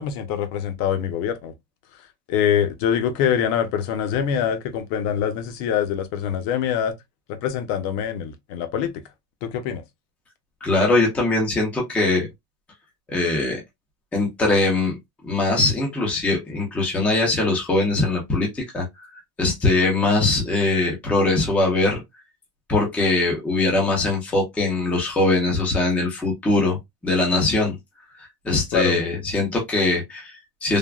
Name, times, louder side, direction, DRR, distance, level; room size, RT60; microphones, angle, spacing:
voice 1, 0.0-1.5 1.9-6.9 7.3-9.0 9.4-9.8 28.7-29.0, left 8 dB, 45° left, 0.7 m, -24 dB
voice 2, 10.6-12.3 13.1-13.6 14.1-15.0 15.2-18.9 19.4-22.0 22.7-26.8 27.0-27.7 28.4-30.8, left 2 dB, 5° left, 0.4 m, -21 dB
3.4 x 2.1 x 2.3 m
supercardioid pair, 155°, 46 cm